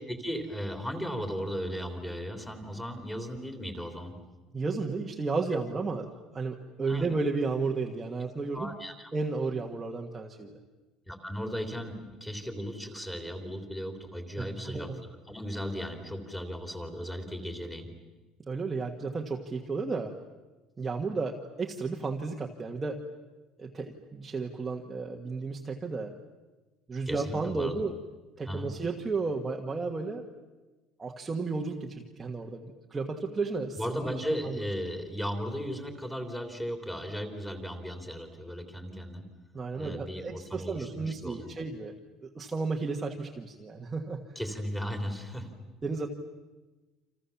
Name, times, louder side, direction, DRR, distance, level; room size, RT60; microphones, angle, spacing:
voice 1, 0.1-4.2 5.5-5.8 6.9-7.1 8.5-9.1 11.1-14.9 15.3-17.9 27.1-27.7 28.5-28.7 33.8-39.2 39.8-41.5 44.4-45.5, equal, 5° left, 5 dB, 3.5 m, -36 dB
voice 2, 4.5-6.1 6.3-8.7 9.1-10.6 14.4-15.0 18.5-20.1 20.8-23.0 23.6-26.1 26.9-28.0 28.4-30.2 31.0-34.2 34.4-34.6 39.5-41.9 42.2-44.2 45.8-46.1, right 4 dB, 15° right, 0 dB, 1.6 m, -33 dB
29.5 x 27.0 x 7.2 m, 1.2 s
cardioid pair, 160°, 0 cm